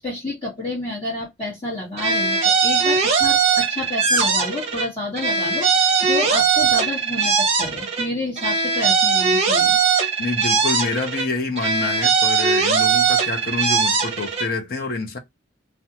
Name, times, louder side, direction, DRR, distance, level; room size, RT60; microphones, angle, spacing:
voice 1, 0.0-9.8, left 2 dB, 25° left, 1.2 m, -30 dB
sound 1, 2.0-4.9 5.2-8.1 8.4-11.3 11.6-14.5, right 5 dB, 30° right, 0.7 m, -20 dB
voice 2, 10.2-15.2, left 3 dB, 50° left, 0.6 m, -27 dB
2.4 x 2.2 x 2.8 m
head